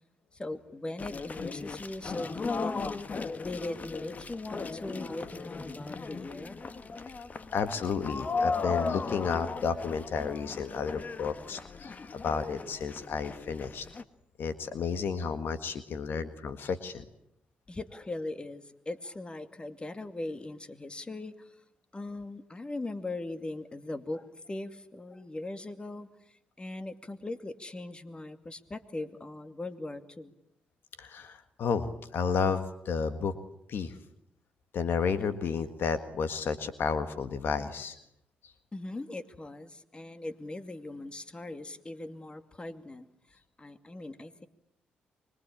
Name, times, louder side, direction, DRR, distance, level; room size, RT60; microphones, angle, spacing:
voice 1, 0.3-3.0 3.4-7.1 17.7-21.5 21.9-26.1 26.6-30.3 38.7-43.1 43.6-44.5, left 2 dB, 25° left, 9 dB, 2.4 m, -40 dB
sound 1, 1.0-14.0, left 4 dB, 45° left, 1.6 m, -37 dB
voice 2, 7.5-13.9 14.4-17.0 31.0-33.3 33.7-34.0 34.7-38.0 38.4-38.5, left 5 dB, 65° left, 10 dB, 1.7 m, -32 dB
25.0 x 22.5 x 8.7 m, 0.76 s
supercardioid pair, 55°, 4 cm